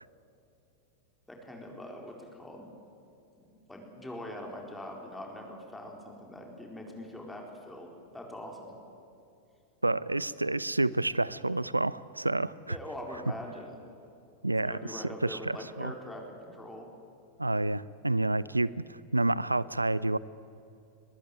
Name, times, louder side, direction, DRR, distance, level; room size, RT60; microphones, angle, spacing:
voice 1, 1.3-2.7 3.4-8.7 12.7-13.8 14.6-16.9, left 1 dB, 5° left, 0 dB, 4.4 m, -43 dB
voice 2, 9.8-12.8 14.4-15.9 17.4-20.2, right 2 dB, 85° right, 20 dB, 0.5 m, -29 dB
22.5 x 20.5 x 9.3 m, 2.7 s
figure-of-eight pair, 90°, 0 cm